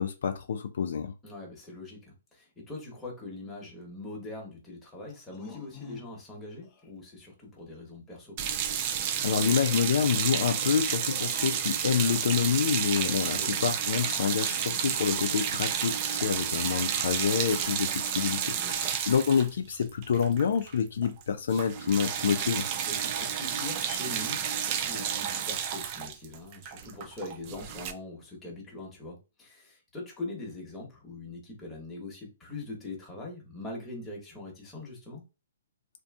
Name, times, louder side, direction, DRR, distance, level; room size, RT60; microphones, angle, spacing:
voice 1, 0.0-1.1 9.2-22.6, left 7 dB, 70° left, 0.3 m, -27 dB
voice 2, 1.2-8.4 13.4-13.6 18.6-18.9 22.8-35.2, left 2 dB, 10° left, 1.1 m, -42 dB
sound 1, 5.1-6.3 6.6-6.9 8.8-8.9 9.6-12.6 13.0-13.5, left 5 dB, 25° left, 0.6 m, -49 dB
sound 2, 8.4-20.7 21.0-21.2 21.5-27.9, right 8 dB, 35° right, 0.3 m, -31 dB
2.6 x 2.5 x 2.3 m
hypercardioid pair, 150°, 0 cm